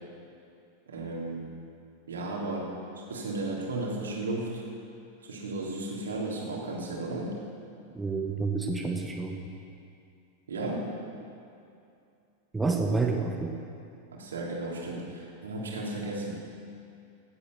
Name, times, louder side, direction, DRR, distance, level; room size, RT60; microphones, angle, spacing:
voice 1, 0.9-1.5 2.1-4.6 5.2-7.4 10.5-10.9 14.1-16.3, right 2 dB, 65° right, -2 dB, 2.9 m, -34 dB
voice 2, 7.9-9.5 12.5-13.6, right 3 dB, 10° right, 2 dB, 1.1 m, -29 dB
16.0 x 8.5 x 6.9 m, 2.5 s
figure-of-eight pair, 90°, 0 cm